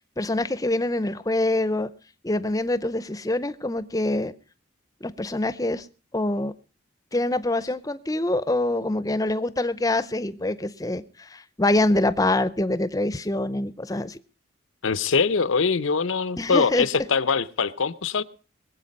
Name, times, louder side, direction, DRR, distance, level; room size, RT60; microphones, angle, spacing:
voice 1, 0.2-1.9 2.2-4.3 5.0-5.9 6.1-6.5 7.1-14.2 16.4-16.9, left 2 dB, 20° left, 0.6 m, -25 dB
voice 2, 14.8-18.2, left 5 dB, 85° left, 0.7 m, -23 dB
22.0 x 8.1 x 5.3 m
head